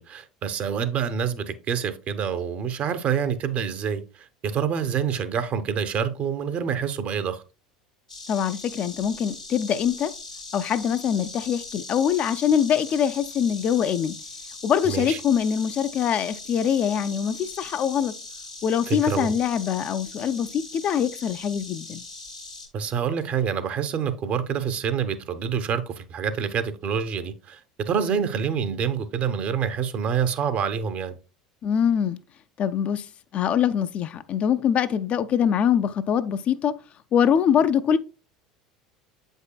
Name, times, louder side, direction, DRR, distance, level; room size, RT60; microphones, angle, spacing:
voice 1, 0.0-7.4 14.8-15.2 18.9-19.3 22.7-31.2, right 7 dB, 40° right, 0.8 m, -27 dB
Insect, 8.1-22.7, left 3 dB, 90° left, 1.2 m, -40 dB
voice 2, 8.3-10.1 10.5-14.2 14.6-18.1 18.6-22.0 31.6-32.2 32.6-33.1 33.3-36.8 37.1-38.0, left 8 dB, 40° left, 0.4 m, -23 dB
8.0 x 5.4 x 2.2 m
figure-of-eight pair, 70°, 4 cm